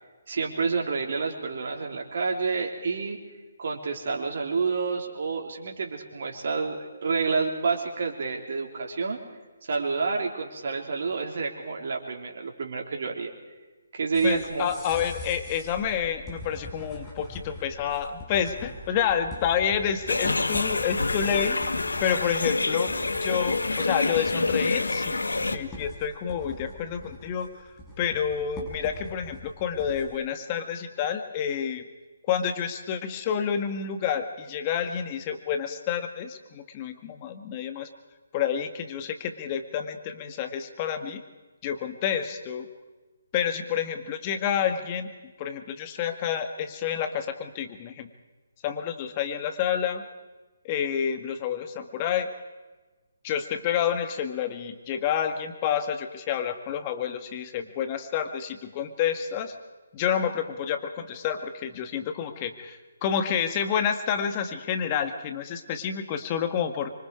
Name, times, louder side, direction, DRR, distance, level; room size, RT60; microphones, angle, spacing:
voice 1, 0.3-3.2 3.6-9.2 9.6-13.3 13.9-14.7, right 4 dB, 55° right, 1 dB, 3.5 m, -29 dB
sound 1, 14.1-30.2, left 2 dB, 15° left, 6.3 m, -43 dB
voice 2, 14.2-21.7 22.0-25.2 25.5-27.7 28.0-31.8 32.3-37.9 38.3-41.2 41.6-42.7 43.3-45.1 45.4-48.1 48.6-50.1 50.6-52.3 53.2-59.5 59.9-66.9, left 8 dB, 30° left, 8 dB, 1.8 m, -29 dB
sound 2, 20.1-25.6, left 3 dB, 80° left, 1.3 m, -27 dB
25.5 x 24.5 x 4.8 m, 1.2 s
figure-of-eight pair, 145°, 0 cm